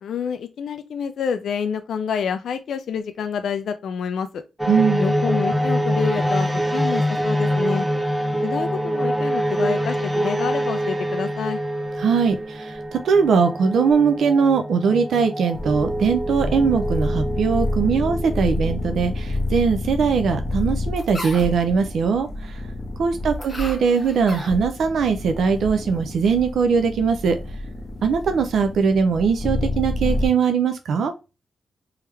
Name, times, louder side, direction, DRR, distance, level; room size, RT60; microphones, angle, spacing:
voice 1, 0.0-4.4 5.0-7.9 8.4-11.6, left 7 dB, 80° left, 0.4 m, -28 dB
sound 1, 4.6-19.0, equal, ahead, 0.6 m, -25 dB
voice 2, 4.7-5.1 12.0-22.6 23.0-27.4 28.0-31.1, right 6 dB, 80° right, 0.5 m, -20 dB
sound 2, 15.5-30.3, left 2 dB, 25° left, 1.3 m, -28 dB
3.4 x 3.3 x 3.2 m
wide cardioid pair, 145°, 0 cm